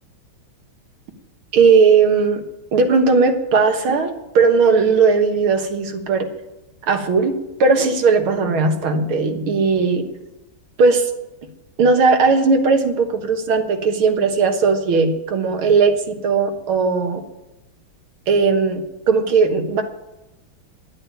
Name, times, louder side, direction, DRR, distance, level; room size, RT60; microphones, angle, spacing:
voice 1, 1.5-2.4 2.7-6.3 6.9-7.3 7.6-10.1 10.8-11.1 11.8-17.2 18.3-19.8, right 4 dB, 80° right, 5 dB, 2.3 m, -17 dB
11.0 x 8.8 x 9.0 m, 0.97 s
omnidirectional pair, 2.3 m